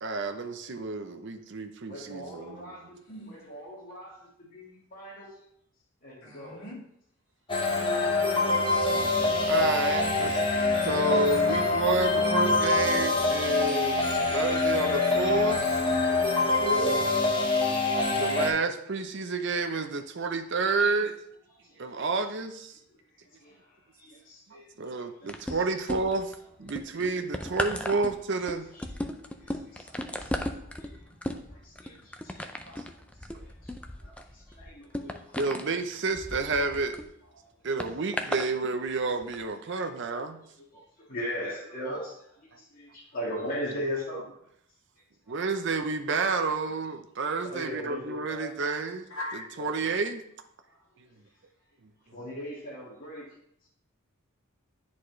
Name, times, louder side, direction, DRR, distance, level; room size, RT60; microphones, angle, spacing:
voice 1, 0.0-2.8 9.5-10.4 10.8-15.8 18.1-21.2 21.8-22.8 24.8-26.3 26.6-28.7 35.4-37.0 37.6-40.4 45.3-49.1 49.6-50.2, right 3 dB, 55° right, 7 dB, 0.7 m, -30 dB
voice 2, 1.9-3.0 3.3-5.3 6.0-6.6 16.0-18.4 21.9-22.0 23.4-24.7 24.9-25.6 25.9-26.1 27.4-27.5 28.0-28.1 28.7-29.1 29.4-30.5 30.8-31.0 31.5-32.8 33.3-33.7 34.0-35.4 37.3-37.4 39.7-39.9 40.4-40.5 40.7-42.1 42.4-44.3 47.4-48.6 49.6-49.7 52.1-53.3, equal, 40° left, -6 dB, 1.8 m, -39 dB
voice 3, 6.2-6.8 49.1-49.5, left 1 dB, 60° left, -7 dB, 2.4 m, -39 dB
sound 1, 7.5-18.5, left 3 dB, 25° left, 1.1 m, -25 dB
sound 2, 25.3-26.3 26.7-37.1 37.8-38.5 39.2-39.4, left 1 dB, 5° left, 0.4 m, -36 dB
9.8 x 4.2 x 3.1 m, 0.71 s
head